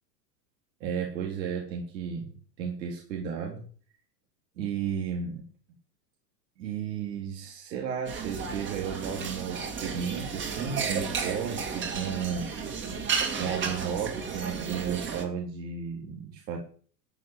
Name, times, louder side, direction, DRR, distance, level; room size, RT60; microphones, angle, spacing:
voice 1, 0.8-2.3 2.6-3.6 4.6-5.4 6.6-12.5 13.4-16.6, right 7 dB, 80° right, 0 dB, 3.9 m, -33 dB
sound 1, 8.1-15.3, right 6 dB, 20° right, 2.3 m, -33 dB
14.0 x 6.2 x 8.8 m, 0.42 s
supercardioid pair, 160°, 50 cm